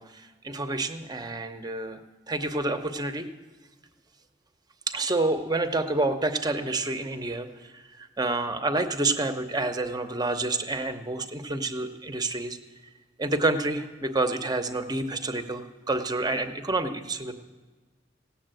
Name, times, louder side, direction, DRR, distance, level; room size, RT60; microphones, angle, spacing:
voice 1, 0.0-2.0 2.3-3.3 4.9-12.6 13.2-17.3, right 2 dB, 20° right, 7 dB, 0.8 m, -28 dB
16.0 x 7.2 x 9.0 m, 1.3 s
head